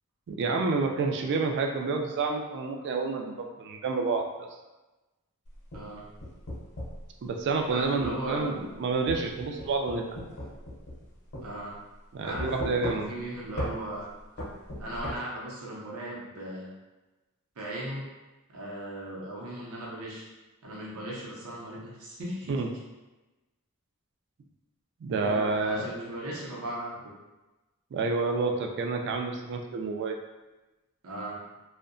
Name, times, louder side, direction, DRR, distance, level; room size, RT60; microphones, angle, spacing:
voice 1, 0.3-4.5 7.2-10.1 12.1-13.1 22.5-22.7 25.0-25.8 27.9-30.2, right 4 dB, 55° right, 3 dB, 0.3 m, -29 dB
sound 1, 5.5-7.0 8.0-8.2 9.1-11.1 11.3-11.5 12.4-13.2 13.6-13.8 14.4-15.2, left 1 dB, 60° left, 0.7 m, -36 dB
voice 2, 5.7-6.0 7.7-8.6 11.4-11.7 12.2-14.1 14.8-16.7 17.6-18.0 18.5-20.3 20.6-22.5 25.2-27.1 31.0-31.4, right 1 dB, 75° right, -4 dB, 0.7 m, -37 dB
2.6 x 2.1 x 2.5 m, 1.1 s
head